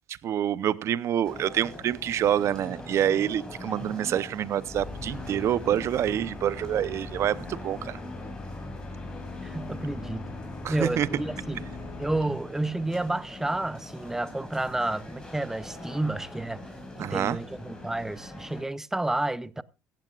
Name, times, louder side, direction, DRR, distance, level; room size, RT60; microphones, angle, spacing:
voice 1, 0.2-8.0 10.6-11.1 17.0-17.4, right 10 dB, 55° right, 0.7 m, -27 dB
sound 1, 1.2-18.6, left 1 dB, 10° left, 5.6 m, -42 dB
sound 2, 4.6-12.2, left 2 dB, 35° left, 4.3 m, -40 dB
voice 2, 9.4-10.3 10.7-11.7 12.0-16.6 17.0-19.6, right 2 dB, 10° right, 0.6 m, -30 dB
16.0 x 15.0 x 2.4 m
cardioid pair, 120°, 6 cm